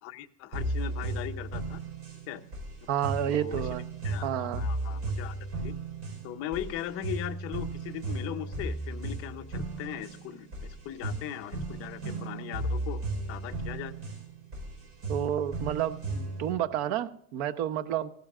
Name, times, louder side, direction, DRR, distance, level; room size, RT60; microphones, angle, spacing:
voice 1, 0.0-1.8 2.3-2.4 3.3-5.3 5.6-5.7 6.2-13.0 13.3-13.9, left 11 dB, 40° left, 6 dB, 0.8 m, -39 dB
sound 1, 0.5-16.5, right 2 dB, 45° right, 4.8 m, -35 dB
voice 2, 2.9-3.8 4.2-4.6 15.1-18.1, right 10 dB, 70° right, 13 dB, 0.9 m, -30 dB
16.0 x 14.0 x 2.4 m, 0.70 s
cardioid pair, 170°, 36 cm